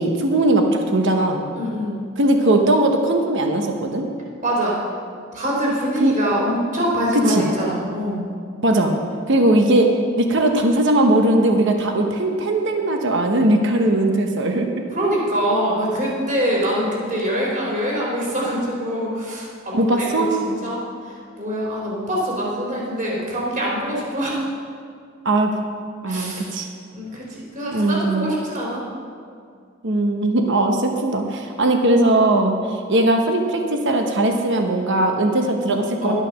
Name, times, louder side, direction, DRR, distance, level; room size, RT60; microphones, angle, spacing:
voice 1, 0.0-1.4 2.2-4.1 6.0-6.1 7.3-7.5 8.6-8.9 9.3-9.9 10.2-14.8 19.7-20.3 25.2-25.5 26.0-26.7 27.7-28.3 29.8-36.1, right 1 dB, 60° right, 4 dB, 1.0 m, -19 dB
voice 2, 1.5-2.0 4.4-4.8 5.3-8.2 14.9-24.5 26.1-26.5 26.9-28.8 36.0-36.1, equal, 40° right, -4 dB, 3.5 m, -24 dB
11.5 x 8.9 x 6.3 m, 2.2 s
head